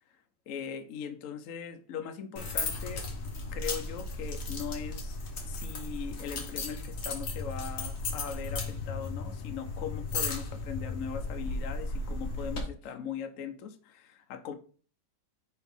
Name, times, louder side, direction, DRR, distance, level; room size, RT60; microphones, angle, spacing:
voice 1, 0.5-3.0 3.5-5.2 5.4-14.5, left 7 dB, 65° left, 7 dB, 0.8 m, -40 dB
sound 1, 2.4-12.6, left 3 dB, 45° left, 1.5 m, -35 dB
4.6 x 4.4 x 5.4 m, 0.42 s
omnidirectional pair, 2.1 m